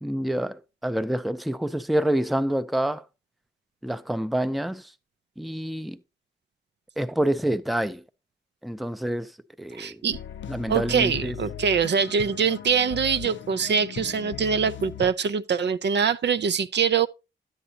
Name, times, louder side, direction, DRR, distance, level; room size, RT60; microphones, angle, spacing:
voice 1, 0.0-3.0 3.8-4.9 5.4-6.0 7.0-8.0 8.6-9.3 9.6-10.0 10.5-11.4, right 1 dB, ahead, 0.5 m, -27 dB
voice 2, 9.8-10.2 10.7-17.1, right 6 dB, 60° right, 0.5 m, -24 dB
sound 1, 10.1-15.1, left 9 dB, 70° left, 0.4 m, -38 dB
10.0 x 8.0 x 2.7 m
cardioid pair, 55°, 20 cm